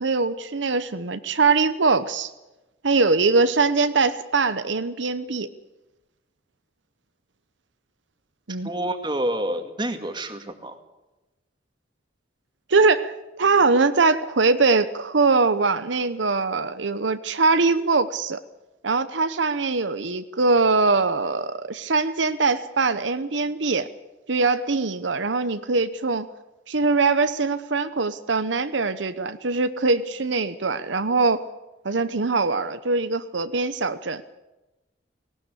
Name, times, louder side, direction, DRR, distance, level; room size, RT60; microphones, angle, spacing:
voice 1, 0.0-2.3 2.8-5.5 8.5-8.7 12.7-18.4 18.8-23.9 24.3-26.3 26.7-31.4 31.8-34.2, right 4 dB, 80° right, 12 dB, 0.9 m, -22 dB
voice 2, 8.6-10.8, right 1 dB, 25° right, 7 dB, 2.0 m, -28 dB
18.5 x 18.0 x 8.4 m, 1.0 s
head